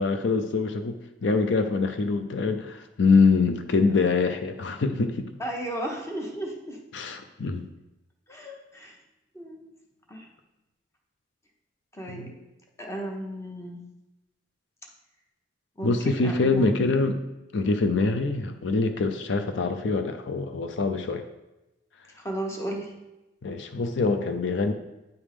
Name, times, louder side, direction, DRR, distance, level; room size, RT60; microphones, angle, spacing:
voice 1, 0.0-5.3 6.9-7.7 12.1-12.3 15.8-17.2 17.5-21.2 23.4-24.7, left 4 dB, 80° left, 7 dB, 0.5 m, -24 dB
voice 2, 5.4-6.8 8.3-9.0 9.3-9.6 10.1-10.3 11.9-12.3 12.8-13.8 15.8-16.8 22.1-23.0, right 1 dB, 15° left, 0 dB, 1.0 m, -34 dB
9.2 x 3.6 x 4.9 m, 0.99 s
head